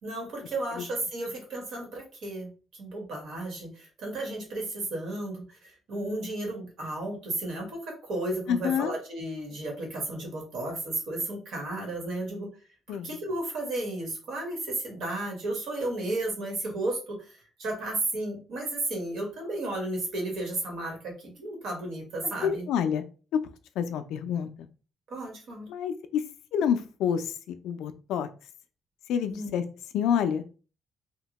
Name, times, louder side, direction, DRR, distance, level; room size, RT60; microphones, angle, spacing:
voice 1, 0.0-2.5 2.8-12.5 12.9-22.7 25.1-25.7 29.3-29.5, right 2 dB, 80° right, 1 dB, 1.2 m, -33 dB
voice 2, 8.5-8.9 12.9-13.2 22.4-23.0 23.8-24.7 25.7-26.2 26.5-28.3 29.1-29.6 29.9-30.4, left 8 dB, 85° left, 9 dB, 0.3 m, -28 dB
2.8 x 2.1 x 2.8 m, 0.35 s
cardioid pair, 90°, 0 cm